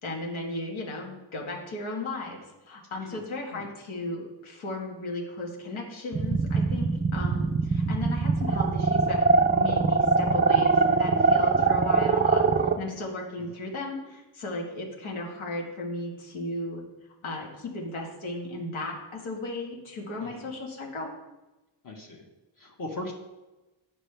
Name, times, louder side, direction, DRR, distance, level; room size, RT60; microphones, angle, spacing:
voice 1, 0.0-21.1, left 2 dB, 85° left, -1 dB, 1.6 m, -36 dB
sound 1, 6.1-12.8, right 4 dB, 25° right, 0.3 m, -22 dB
voice 2, 21.8-22.2 22.6-23.1, left 1 dB, 45° left, 0 dB, 1.2 m, -38 dB
8.9 x 5.3 x 3.3 m, 1.0 s
wide cardioid pair, 115°, 47 cm